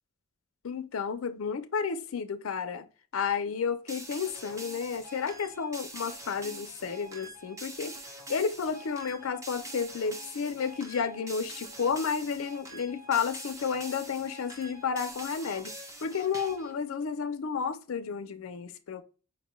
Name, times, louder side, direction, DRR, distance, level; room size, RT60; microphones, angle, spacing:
voice 1, 0.6-2.9 3.1-8.0 8.3-15.7 16.0-19.0, left 6 dB, 85° left, 0.5 m, -32 dB
sound 1, 3.9-16.8, right 1 dB, 15° right, 0.5 m, -44 dB
5.2 x 2.2 x 3.0 m
head